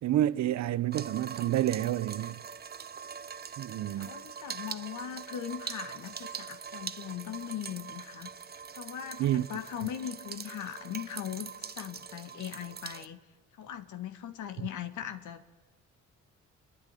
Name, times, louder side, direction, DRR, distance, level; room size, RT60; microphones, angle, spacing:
voice 1, 0.0-2.4 3.6-4.1 9.2-9.5, right 13 dB, 65° right, 0.7 m, -29 dB
sound 1, 0.9-13.1, right 7 dB, 30° right, 0.8 m, -43 dB
voice 2, 4.0-8.3 8.7-13.2 13.5-15.4, left 10 dB, 75° left, 1.6 m, -39 dB
29.0 x 10.5 x 9.9 m
cardioid pair, 90°, 30 cm